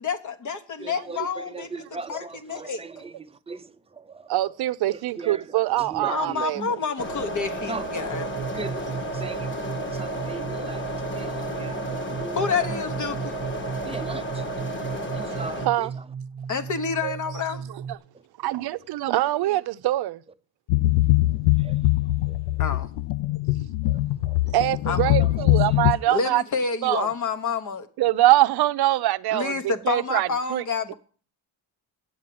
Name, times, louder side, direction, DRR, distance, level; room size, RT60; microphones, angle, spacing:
voice 1, 0.0-1.8 2.1-2.2 2.5-2.8 6.1-8.3 12.4-13.3 16.5-17.6 22.6-22.9 24.9-25.1 26.1-27.9 29.3-30.9, left 5 dB, 40° left, 1.2 m, -28 dB
voice 2, 0.8-4.3 4.9-6.7 7.7-7.9 8.5-12.8 13.8-16.1 21.5-21.8 22.2-22.4 23.8-24.4 25.2-25.8 26.1-26.2, right 3 dB, 15° right, 0.6 m, -39 dB
voice 3, 4.3-6.8 8.4-8.5 15.3-15.9 17.0-17.2 17.9-18.0 18.4-20.2 24.5-26.4 26.8-27.1 28.0-30.6, right 15 dB, 55° right, 0.6 m, -24 dB
sound 1, 7.0-15.7, right 1 dB, 25° left, 1.4 m, -32 dB
sound 2, 8.1-17.9, right 6 dB, 30° right, 1.2 m, -36 dB
sound 3, 20.7-25.9, left 18 dB, 85° left, 0.6 m, -22 dB
8.7 x 7.4 x 7.7 m
cardioid pair, 105°, 45 cm